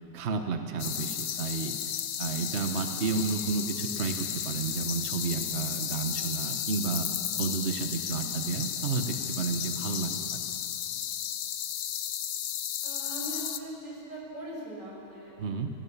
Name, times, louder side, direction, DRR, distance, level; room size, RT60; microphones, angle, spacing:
voice 1, 0.1-1.7 2.2-7.1 7.4-10.1 15.4-15.7, right 5 dB, 40° right, 6 dB, 1.3 m, -31 dB
sound 1, 0.8-13.6, left 10 dB, 75° left, 1.5 m, -34 dB
voice 2, 12.8-15.3, right 1 dB, 90° right, -4 dB, 7.3 m, -40 dB
28.5 x 18.5 x 7.4 m, 2.9 s
omnidirectional pair, 1.9 m